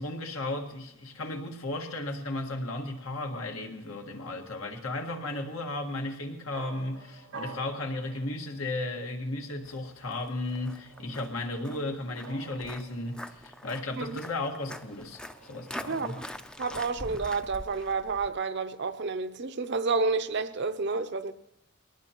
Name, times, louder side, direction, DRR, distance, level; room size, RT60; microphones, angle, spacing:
voice 1, 0.0-16.2, left 2 dB, 85° left, 1.8 m, -35 dB
sound 1, 1.6-18.0, right 4 dB, 85° right, 1.6 m, -52 dB
Walk footsteps, 9.7-18.3, left 1 dB, 5° left, 0.4 m, -44 dB
voice 2, 15.9-16.2 16.6-21.3, right 4 dB, 55° right, 0.6 m, -30 dB
22.0 x 18.5 x 3.0 m
head